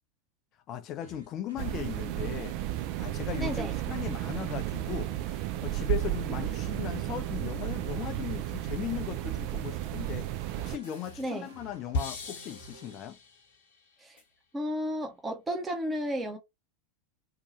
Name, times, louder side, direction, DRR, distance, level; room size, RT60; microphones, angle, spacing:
voice 1, 0.7-2.6 3.0-13.2, left 11 dB, 40° left, 0.4 m, -38 dB
sound 1, 1.0-13.0, right 3 dB, 70° right, 0.7 m, -53 dB
sound 2, 1.6-10.8, right 14 dB, 50° right, 0.4 m, -33 dB
voice 2, 3.3-3.7 11.2-11.5 14.0-14.2 14.5-16.4, equal, 15° right, 0.8 m, -33 dB
sound 3, 9.8-9.9 10.8-13.6 14.2-14.3, left 3 dB, 65° left, 0.9 m, -38 dB
2.7 x 2.3 x 2.9 m
figure-of-eight pair, 85°, 0 cm